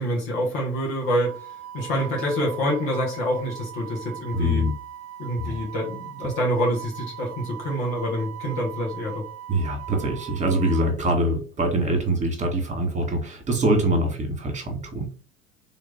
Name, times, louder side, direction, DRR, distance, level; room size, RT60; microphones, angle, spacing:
voice 1, 0.0-1.5 1.7-4.6 5.2-9.2, equal, 65° left, -2 dB, 1.9 m, -26 dB
Wind instrument woodwind instrument, 1.0-10.9, right 11 dB, 40° right, 0.6 m, -40 dB
voice 2, 4.3-4.7 5.4-5.6 9.5-15.1, right 1 dB, 20° right, 4 dB, 1.8 m, -24 dB
3.8 x 3.1 x 3.6 m, 0.37 s
hypercardioid pair, 80°, 38 cm